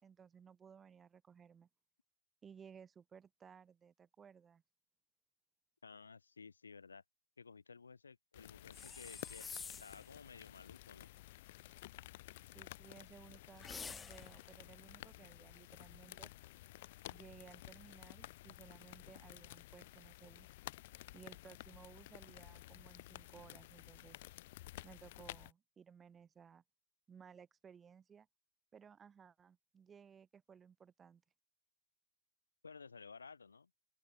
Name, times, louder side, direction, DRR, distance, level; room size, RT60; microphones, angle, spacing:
voice 1, 0.0-1.7 2.4-4.6 12.5-16.3 17.1-20.5 21.1-24.2 24.8-26.6 27.1-28.3 28.7-31.2, right 7 dB, 20° right, 5.2 m, -59 dB
voice 2, 5.8-7.0 7.4-9.5 9.8-11.1 32.6-33.7, left 5 dB, 75° left, 3.5 m, -55 dB
sound 1, 8.3-25.5, left 17 dB, 55° left, 0.6 m, -53 dB
sound 2, 8.7-10.1 13.6-14.4, left 5 dB, 15° left, 1.5 m, -48 dB
open air
figure-of-eight pair, 90°, 0 cm